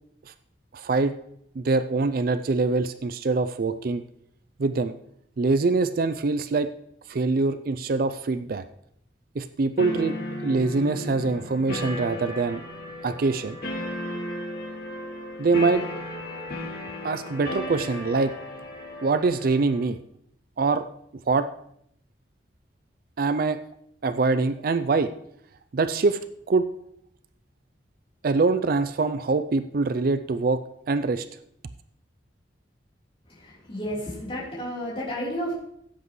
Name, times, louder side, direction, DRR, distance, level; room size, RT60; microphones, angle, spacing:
voice 1, 0.7-1.1 1.6-4.0 4.6-4.9 5.4-6.7 7.1-8.6 9.4-10.2 10.4-12.6 13.0-13.6 15.4-15.8 17.0-18.3 19.0-20.0 20.6-20.9 21.3-21.5 23.2-23.6 24.0-25.1 25.7-26.2 26.5-26.7 28.2-30.6 30.9-31.3, right 3 dB, 50° right, 12 dB, 0.4 m, -24 dB
sound 1, 9.8-19.8, left 1 dB, 55° left, 2.1 m, -35 dB
voice 2, 33.3-35.5, equal, 30° left, -7 dB, 3.6 m, -32 dB
16.0 x 8.1 x 3.1 m, 0.72 s
head